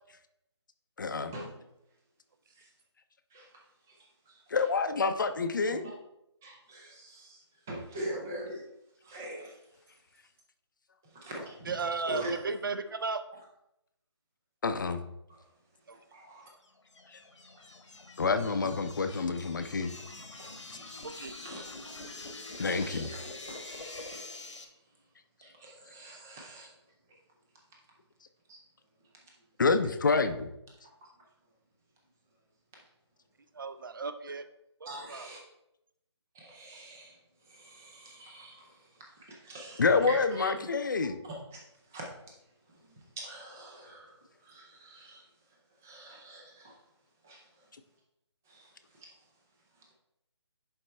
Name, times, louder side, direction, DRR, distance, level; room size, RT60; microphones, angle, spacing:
voice 1, 1.0-1.3 4.5-5.9 14.6-15.0 17.1-17.2 18.2-19.9 22.6-23.1 29.6-30.5 39.8-41.2, left 4 dB, 45° left, 9 dB, 0.6 m, -28 dB
voice 2, 6.4-8.6 9.0-9.6 11.1-11.7 12.1-12.4 15.3-15.4 16.1-16.5 21.4-22.3 22.7-24.7 25.4-26.7 28.5-28.6 31.0-31.1 34.8-35.4 36.3-37.2 37.5-40.7 41.9-42.0 42.8-45.2 45.8-46.7 47.2-47.4 48.5-48.7 49.0-49.1, right 1 dB, 5° right, -2 dB, 0.4 m, -44 dB
voice 3, 11.6-13.2 15.9-16.0 21.0-21.4 33.5-34.4 34.8-35.3, right 4 dB, 45° right, 10 dB, 0.6 m, -35 dB
sound 1, 16.7-24.6, left 2 dB, 90° left, 1.4 m, -45 dB
10.5 x 4.4 x 3.3 m, 0.85 s
figure-of-eight pair, 170°, 15 cm